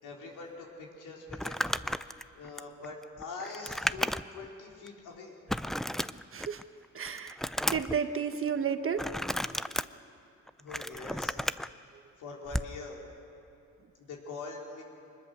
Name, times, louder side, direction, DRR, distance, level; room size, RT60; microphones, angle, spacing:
voice 1, 0.0-1.6 2.4-5.3 10.6-11.3 12.2-13.0 14.0-14.8, left 3 dB, 85° left, -1 dB, 3.9 m, -43 dB
Crumpling crinkling, 1.3-4.5 4.9-5.0 5.5-6.6 7.0-8.0 9.0-9.8 10.5-11.7 12.5-12.7, equal, ahead, 0.4 m, -33 dB
voice 2, 6.9-7.4 7.7-9.0, right 7 dB, 45° right, 8 dB, 1.4 m, -31 dB
23.5 x 21.0 x 6.4 m, 2.7 s
cardioid pair, 90°, 30 cm